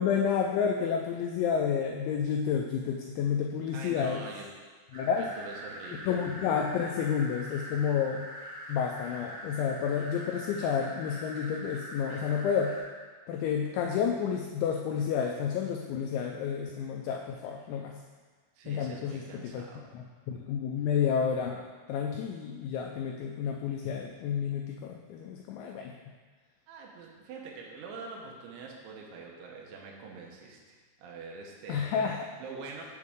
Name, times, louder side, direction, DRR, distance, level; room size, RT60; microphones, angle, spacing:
voice 1, 0.0-4.2 4.9-5.3 6.1-8.3 8.7-12.7 13.3-18.0 18.7-19.7 19.9-25.9 31.7-32.3, left 7 dB, 85° left, 1 dB, 2.6 m, -30 dB
voice 2, 3.7-4.5 5.1-6.2 18.6-19.9 26.7-31.8 32.4-32.8, right 4 dB, 75° right, -1 dB, 3.1 m, -45 dB
sound 1, 4.9-12.8, equal, 35° right, 2.0 m, -43 dB
8.0 x 7.4 x 3.6 m, 1.5 s
omnidirectional pair, 5.7 m